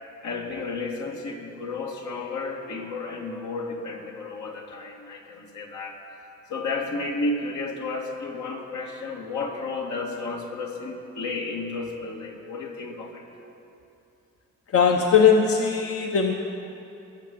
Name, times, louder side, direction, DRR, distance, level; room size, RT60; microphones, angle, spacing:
voice 1, 0.2-6.0 6.5-13.2, left 3 dB, 75° left, 0 dB, 2.3 m, -32 dB
voice 2, 14.7-16.3, left 6 dB, 50° left, 2 dB, 1.1 m, -19 dB
20.0 x 6.6 x 8.7 m, 2.8 s
cardioid pair, 90°, 30 cm